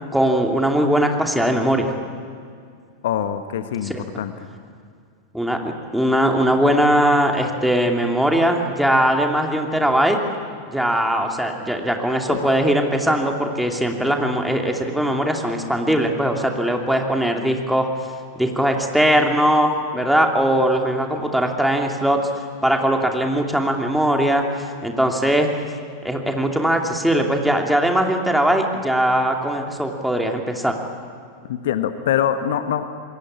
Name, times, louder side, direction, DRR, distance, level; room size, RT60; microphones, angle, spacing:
voice 1, 0.1-1.9 3.9-4.0 5.3-10.2 10.7-17.9 18.4-24.4 24.8-25.5 26.0-30.7, equal, ahead, 2 dB, 2.8 m, -20 dB
voice 2, 3.0-4.5 12.3-12.5 31.4-32.8, left 9 dB, 55° left, 10 dB, 1.2 m, -24 dB
26.5 x 21.5 x 8.7 m, 2.2 s
figure-of-eight pair, 90°, 0 cm